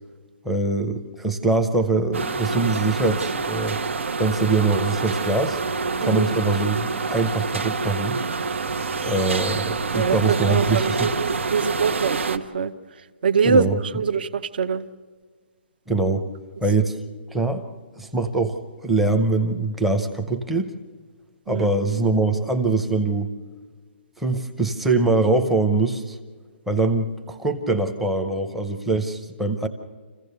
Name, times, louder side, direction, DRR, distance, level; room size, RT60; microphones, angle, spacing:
voice 1, 0.4-3.8 4.2-5.6 6.0-8.2 9.0-11.1 13.4-13.8 15.9-16.3 16.6-17.0 17.3-17.6 18.0-20.7 21.5-23.3 24.2-26.2 26.7-29.7, right 3 dB, ahead, 4 dB, 0.7 m, -23 dB
sound 1, 2.1-12.4, right 4 dB, 80° right, 1.3 m, -27 dB
voice 2, 9.9-12.7 13.2-14.8 21.5-21.7, right 5 dB, 50° right, 12 dB, 0.8 m, -23 dB
28.0 x 15.5 x 6.7 m, 1.5 s
hypercardioid pair, 175°, 7 cm